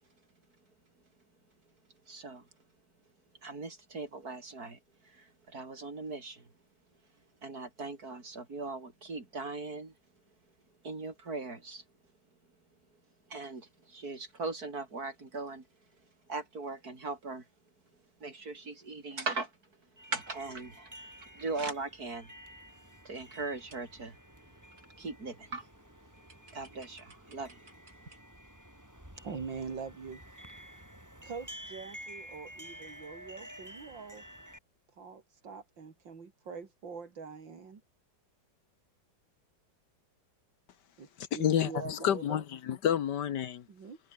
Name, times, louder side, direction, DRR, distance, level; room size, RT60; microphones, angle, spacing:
voice 1, 2.1-2.4 3.4-4.8 5.5-6.4 7.4-9.9 10.8-11.8 13.3-15.6 16.3-17.4 18.2-19.5 20.1-21.0 21.3-22.3 23.0-24.1 25.0-25.7 26.5-27.6, right 3 dB, 50° right, 4.5 m, -39 dB
sound 1, 20.0-34.6, equal, 10° right, 7.1 m, -51 dB
voice 2, 29.2-30.2 31.2-34.2 35.0-37.8 41.0-41.1 41.3-42.4 43.7-44.0, right 5 dB, 80° right, 3.4 m, -43 dB
voice 3, 41.2-43.6, left 9 dB, 70° left, 1.6 m, -30 dB
omnidirectional pair, 2.0 m